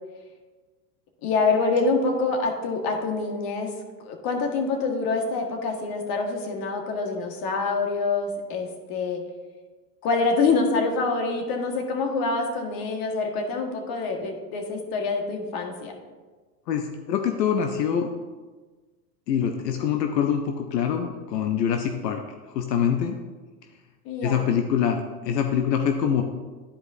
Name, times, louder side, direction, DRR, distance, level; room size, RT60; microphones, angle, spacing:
voice 1, 1.2-3.7 4.0-9.2 10.0-15.9 24.0-24.5, left 3 dB, 45° left, 2 dB, 1.7 m, -26 dB
voice 2, 16.7-18.1 19.3-22.2 22.5-23.2 24.2-26.2, left 8 dB, 80° left, 4 dB, 0.8 m, -24 dB
13.0 x 4.8 x 2.7 m, 1.3 s
hypercardioid pair, 110°, 48 cm